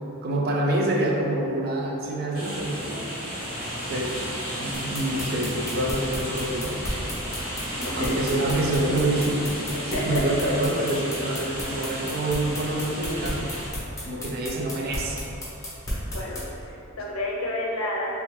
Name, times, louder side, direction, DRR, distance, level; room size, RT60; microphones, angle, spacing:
voice 1, 0.2-3.1 3.9-4.3 4.6-6.8 8.0-9.5 9.8-13.6 14.0-15.3, right 1 dB, 45° right, -1 dB, 0.4 m, -26 dB
sound 1, 2.3-13.7, equal, 85° right, 1.3 m, -33 dB
sound 2, 4.7-16.4, left 1 dB, 15° left, 1.0 m, -33 dB
voice 2, 7.8-8.2 8.6-8.7 9.7-10.5 16.1-18.1, left 1 dB, 70° left, -3 dB, 0.6 m, -30 dB
3.2 x 2.8 x 3.2 m, 2.8 s
head